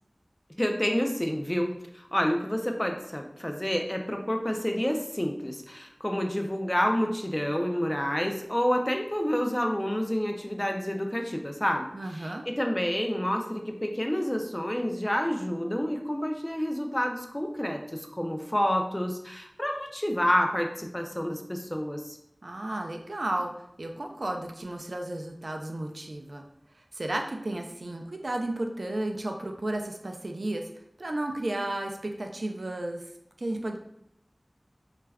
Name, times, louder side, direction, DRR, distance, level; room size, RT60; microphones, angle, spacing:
voice 1, 0.6-22.2, equal, 20° left, 3 dB, 0.3 m, -29 dB
voice 2, 11.9-12.5 22.4-23.5 23.8-26.4 26.9-30.6 31.0-33.0 33.4-33.8, right 1 dB, 75° right, 3 dB, 0.3 m, -33 dB
2.3 x 2.1 x 3.3 m, 0.74 s
wide cardioid pair, 40°, 0 cm